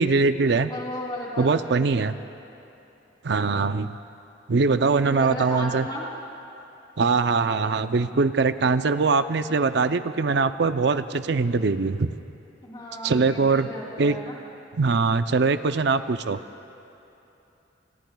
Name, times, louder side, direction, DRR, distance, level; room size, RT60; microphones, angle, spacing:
voice 1, 0.0-0.7 1.4-2.2 3.2-3.9 4.5-5.9 7.0-12.1 13.0-13.7 14.0-14.2 14.8-16.4, right 4 dB, 65° right, 11 dB, 0.5 m, -22 dB
voice 2, 0.7-2.1 4.7-6.1 12.6-14.4, left 1 dB, 25° left, -3 dB, 3.2 m, -35 dB
29.5 x 21.0 x 2.3 m, 2.9 s
head